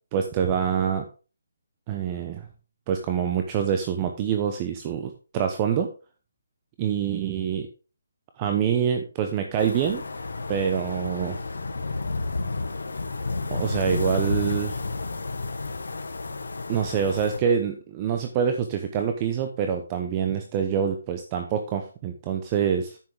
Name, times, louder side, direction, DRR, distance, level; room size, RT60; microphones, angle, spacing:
voice 1, 0.1-1.1 1.9-2.5 2.9-5.9 6.8-7.7 8.4-10.0 10.5-11.4 13.5-14.8 16.7-23.0, right 8 dB, 20° right, 5 dB, 0.8 m, -26 dB
sound 1, 9.6-17.4, left 3 dB, 85° left, 1.8 m, -31 dB
9.8 x 7.4 x 3.5 m, 0.34 s
hypercardioid pair, 170°, 0 cm